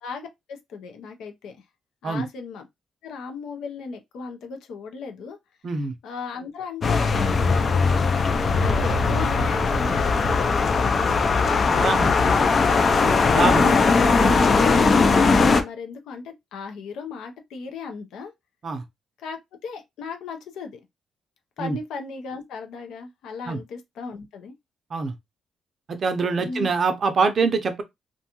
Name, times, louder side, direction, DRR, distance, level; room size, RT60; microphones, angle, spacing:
voice 1, 0.0-1.6 2.0-2.7 3.0-5.4 6.0-7.9 8.5-11.2 11.5-12.4 13.5-18.3 19.2-20.8 21.6-24.5 26.4-26.8, left 5 dB, 85° left, 0.6 m, -36 dB
voice 2, 5.6-5.9 8.5-8.6 11.7-12.1 13.3-13.7 18.6-18.8 21.6-21.8 23.5-23.6 24.9-25.1 25.9-27.8, right 4 dB, 40° right, 0.5 m, -24 dB
sound 1, 6.8-15.6, left 4 dB, 40° left, 0.4 m, -19 dB
2.6 x 2.2 x 2.8 m
cardioid pair, 135°, 0 cm